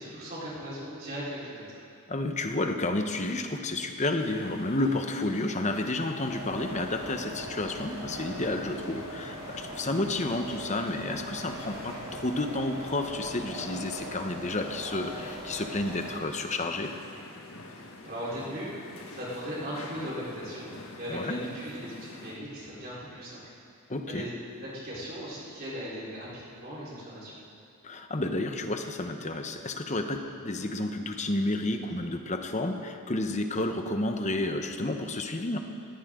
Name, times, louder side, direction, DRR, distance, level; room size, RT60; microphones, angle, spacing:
voice 1, 0.0-1.7 18.0-18.7 19.1-23.4 24.1-24.3 24.7-27.4, equal, 45° right, -8 dB, 4.2 m, -38 dB
voice 2, 2.1-16.9 21.1-21.5 23.9-24.3 27.8-35.6, left 2 dB, 30° left, 5 dB, 1.0 m, -31 dB
sound 1, 4.2-22.4, left 2 dB, 65° left, 1.6 m, -47 dB
sound 2, 6.3-16.2, equal, 15° right, 3.6 m, -41 dB
19.5 x 16.0 x 3.8 m, 2.4 s
head